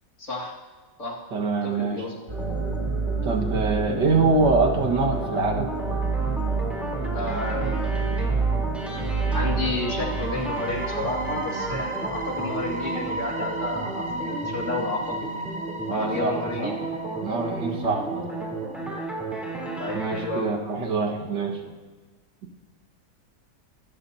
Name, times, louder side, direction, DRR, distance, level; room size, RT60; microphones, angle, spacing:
voice 1, 0.2-0.6 1.0-1.2 1.6-2.2 7.1-8.5 9.3-15.5 15.9-16.8 19.8-20.5, left 2 dB, 45° left, -1 dB, 2.4 m, -31 dB
voice 2, 1.3-2.0 3.2-5.7 15.9-16.8 17.2-18.3 19.9-21.7, right 3 dB, 85° right, 1 dB, 2.3 m, -25 dB
sound 1, 2.3-20.2, right 2 dB, ahead, 3.5 m, -33 dB
sound 2, 2.3-19.0 19.3-19.5 19.9-20.0, right 3 dB, 20° right, 1.1 m, -30 dB
25.5 x 13.5 x 2.8 m, 1.4 s
omnidirectional pair, 1.9 m